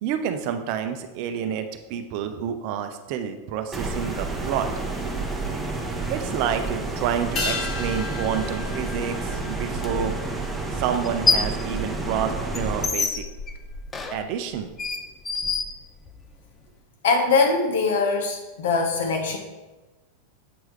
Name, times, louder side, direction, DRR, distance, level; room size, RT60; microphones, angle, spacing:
voice 1, 0.0-4.7 6.1-10.1 10.7-13.2 14.1-14.7, right 8 dB, 50° right, 8 dB, 0.6 m, -29 dB
sound 1, 3.7-12.9, right 3 dB, 5° right, 1.0 m, -30 dB
sound 2, 7.4-12.1 12.3-12.4, left 3 dB, 40° left, 1.6 m, -35 dB
sound 3, 9.8-9.9 10.9-11.6 12.0-16.3, left 4 dB, 20° left, 0.6 m, -27 dB
voice 2, 17.0-19.4, left 4 dB, 70° left, 2 dB, 1.2 m, -22 dB
7.8 x 4.7 x 3.2 m, 1.2 s
hypercardioid pair, 90°, 0 cm